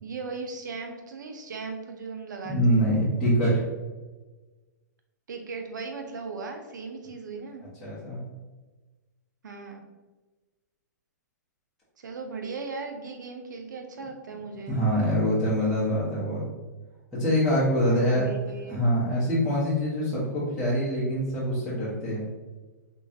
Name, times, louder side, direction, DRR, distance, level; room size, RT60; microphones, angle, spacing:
voice 1, 0.0-2.8 5.3-7.6 9.4-9.8 12.0-14.8 17.8-18.8, right 4 dB, 85° right, 4 dB, 0.6 m, -37 dB
voice 2, 2.5-3.6 7.8-8.2 14.7-16.5 17.1-18.3 18.7-22.3, equal, ahead, -14 dB, 1.0 m, -24 dB
3.7 x 3.1 x 2.8 m, 1.3 s
hypercardioid pair, 150°, 10 cm